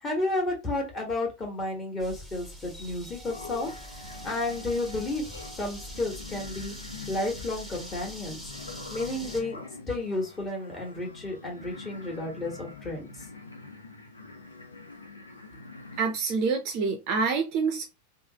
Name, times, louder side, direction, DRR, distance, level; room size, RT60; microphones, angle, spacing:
voice 1, 0.0-3.7 4.2-6.7 7.1-8.4 8.9-9.6 9.9-13.3, left 2 dB, 20° left, 1.4 m, -32 dB
sound 1, 2.0-9.4, equal, ahead, 0.8 m, -43 dB
sound 2, 3.2-16.1, left 3 dB, 75° left, 0.6 m, -45 dB
voice 2, 16.0-17.8, right 5 dB, 40° right, 0.5 m, -27 dB
3.1 x 2.0 x 2.8 m
figure-of-eight pair, 90°, 0 cm